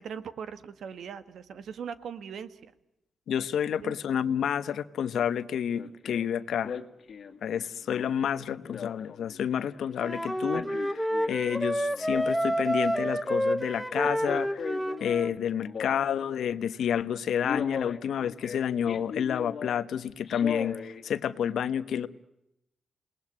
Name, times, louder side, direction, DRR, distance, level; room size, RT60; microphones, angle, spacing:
voice 1, 0.0-2.7 3.8-3.9, right 7 dB, 70° right, 1.7 m, -40 dB
voice 2, 3.3-6.8 7.4-14.7 15.0-22.1, left 8 dB, 75° left, 1.1 m, -30 dB
Male speech man speaking, 5.2-5.4 5.7-6.3 6.6-9.9 10.3-11.7 11.9-12.8 13.9-16.3 16.7-17.0 17.4-19.8 20.3-21.0 21.5-21.6, left 6 dB, 55° left, 2.1 m, -38 dB
Wind instrument woodwind instrument, 10.0-15.3, equal, 5° right, 1.2 m, -29 dB
28.0 x 20.0 x 9.6 m
cardioid pair, 100°, 0 cm